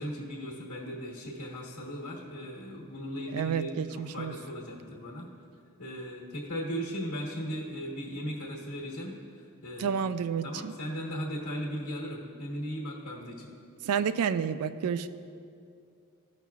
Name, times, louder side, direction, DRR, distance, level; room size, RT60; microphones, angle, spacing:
voice 1, 0.0-5.3 5.8-10.1 10.4-13.5, equal, 80° left, -4 dB, 1.3 m, -37 dB
voice 2, 3.3-4.3 9.8-10.7 13.8-15.1, right 7 dB, 75° right, 13 dB, 0.3 m, -30 dB
15.0 x 5.9 x 2.3 m, 2.5 s
head